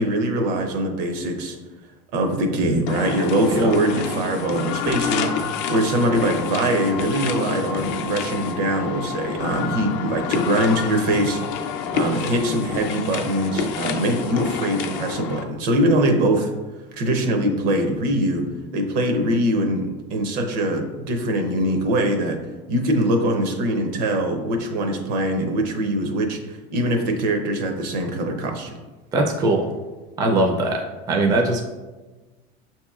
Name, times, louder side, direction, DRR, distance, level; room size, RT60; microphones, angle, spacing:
voice 1, 0.0-1.6 2.1-5.3 5.7-11.4 11.9-16.5 16.9-18.4 18.7-22.4 22.7-28.8, right 1 dB, 80° right, 4 dB, 0.7 m, -22 dB
sound 1, 2.9-15.4, left 6 dB, 60° left, 0.5 m, -28 dB
voice 2, 29.1-29.7 30.2-31.6, right 2 dB, 20° right, 2 dB, 0.3 m, -21 dB
6.0 x 2.9 x 2.3 m, 1.2 s
cardioid pair, 155°, 21 cm